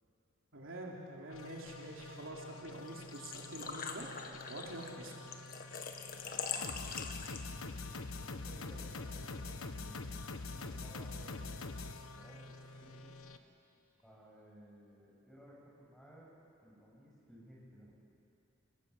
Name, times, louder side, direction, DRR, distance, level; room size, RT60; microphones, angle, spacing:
voice 1, 0.5-4.1 4.5-5.3, right 1 dB, 70° right, -2 dB, 3.4 m, -46 dB
sound 1, 1.3-13.4, left 3 dB, 80° left, 1.3 m, -46 dB
Engine / Trickle dribble / Fill (with liquid), 2.9-7.7, left 6 dB, 45° left, 1.6 m, -43 dB
voice 2, 7.4-7.9 8.2-13.2 14.0-16.3 16.6-17.9, equal, ahead, -4 dB, 6.9 m, -58 dB
29.0 x 20.0 x 8.5 m, 2.7 s
head